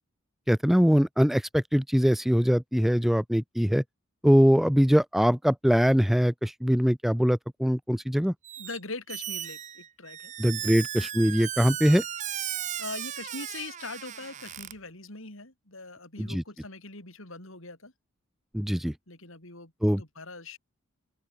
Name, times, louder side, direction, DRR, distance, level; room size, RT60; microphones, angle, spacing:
voice 1, 0.5-3.8 4.2-8.3 10.4-12.0 16.2-16.4 18.5-18.9 19.8-20.0, equal, ahead, 0.3 m, -22 dB
Squeak, 8.4-8.8 9.1-14.7, right 11 dB, 35° right, 0.6 m, -36 dB
voice 2, 8.6-10.3 10.6-10.7 12.5-17.9 18.7-18.8 19.1-20.6, left 3 dB, 65° left, 4.4 m, -42 dB
open air
head